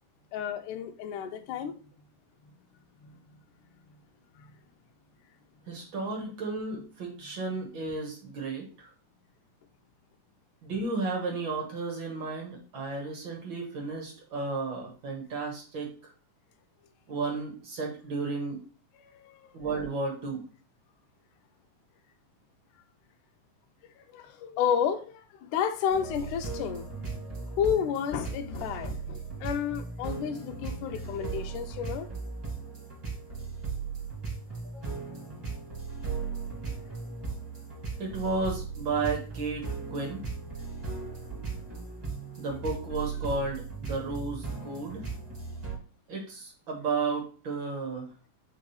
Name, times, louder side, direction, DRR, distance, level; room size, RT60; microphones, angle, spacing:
voice 1, 0.3-1.8 3.0-3.2 4.4-4.5 19.0-19.5 24.0-26.9 27.6-32.1, left 8 dB, 90° left, 2.1 m, -31 dB
voice 2, 5.7-8.9 10.6-16.1 17.1-18.6 19.5-20.4 34.7-34.8 38.0-40.2 42.4-45.0 46.1-48.1, right 3 dB, 50° right, 1.7 m, -33 dB
sound 1, 25.9-45.8, right 4 dB, 20° right, 2.2 m, -37 dB
4.8 x 3.8 x 5.3 m
omnidirectional pair, 3.6 m